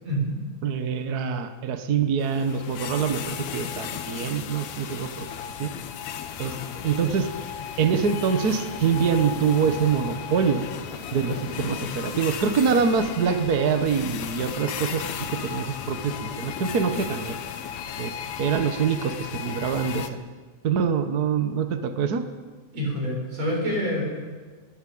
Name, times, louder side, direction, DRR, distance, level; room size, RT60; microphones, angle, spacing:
voice 1, 0.6-5.3 5.6-5.7 6.4-6.6 6.8-7.3 7.8-10.6 11.1-17.4 18.0-20.2 20.6-22.3, right 6 dB, 65° right, 8 dB, 0.9 m, -25 dB
sound 1, 2.2-20.1, left 8 dB, 65° left, 2.1 m, -35 dB
voice 2, 22.7-24.0, equal, 50° right, -2 dB, 8.3 m, -26 dB
21.0 x 17.0 x 8.6 m, 1.4 s
omnidirectional pair, 3.8 m